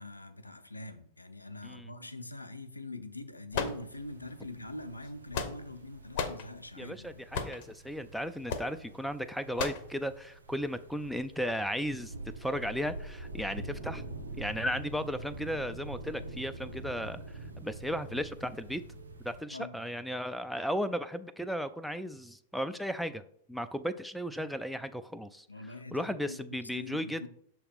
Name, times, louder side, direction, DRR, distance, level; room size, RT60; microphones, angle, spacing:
voice 1, 0.0-7.2 19.5-19.8 25.5-27.3, left 2 dB, 90° left, 0.5 m, -44 dB
sound 1, 3.5-4.3 5.0-5.8 6.1-6.5 7.3-7.7 8.5-8.7 9.6-9.9, left 6 dB, 50° left, 0.7 m, -34 dB
sound 2, 3.6-19.4, right 2 dB, 80° right, 0.8 m, -45 dB
voice 2, 6.8-14.0 14.4-18.8 19.2-23.2 23.5-25.5 25.9-27.3, equal, ahead, 0.3 m, -35 dB
6.3 x 2.9 x 5.2 m
figure-of-eight pair, 95°, 0 cm